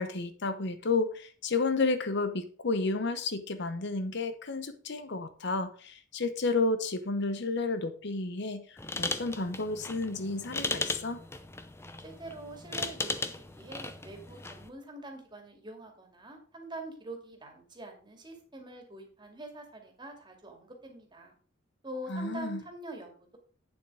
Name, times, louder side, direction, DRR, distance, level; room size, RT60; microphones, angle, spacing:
voice 1, 0.0-11.2 22.1-22.6, left 3 dB, 55° left, 0.8 m, -31 dB
sound 1, 8.8-14.7, left 3 dB, 10° left, 0.6 m, -37 dB
voice 2, 12.0-21.4 21.8-23.4, right 1 dB, 20° right, 2.3 m, -45 dB
8.8 x 7.3 x 4.8 m
head